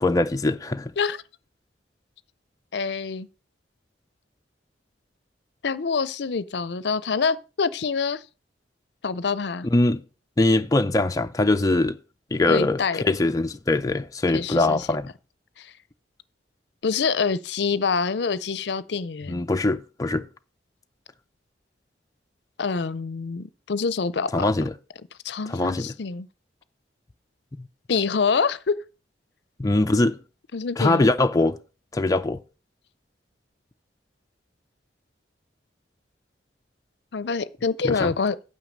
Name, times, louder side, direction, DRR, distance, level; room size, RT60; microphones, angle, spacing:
voice 1, 0.0-0.9 9.7-10.0 10.4-12.0 12.3-15.1 19.3-20.3 24.3-24.7 25.5-25.9 27.6-27.7 29.6-30.2 30.8-31.6 31.9-32.4 37.8-38.1, left 2 dB, 20° left, 0.4 m, -22 dB
voice 2, 2.7-3.3 5.6-8.2 9.0-9.7 12.5-13.0 14.3-14.9 15.6-15.7 16.8-19.4 22.6-24.5 25.2-26.3 27.9-28.8 30.5-31.1 37.1-38.4, left 5 dB, 65° left, 0.5 m, -26 dB
9.2 x 5.6 x 6.5 m
head